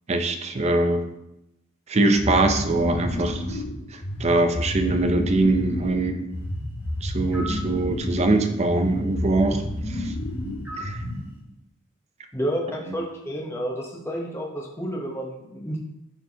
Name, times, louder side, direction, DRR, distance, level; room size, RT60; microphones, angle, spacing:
voice 1, 0.1-1.0 1.9-3.6 3.9-6.3 7.0-10.1 10.8-11.0, right 2 dB, 30° right, 6 dB, 0.5 m, -23 dB
sound 1, 2.2-11.4, left 1 dB, 55° left, 1.5 m, -31 dB
sound 2, 7.3-7.7 10.6-11.1, equal, 10° right, 1.4 m, -36 dB
voice 2, 12.3-15.8, equal, 15° left, -2 dB, 0.9 m, -30 dB
9.8 x 4.6 x 2.8 m, 0.89 s
head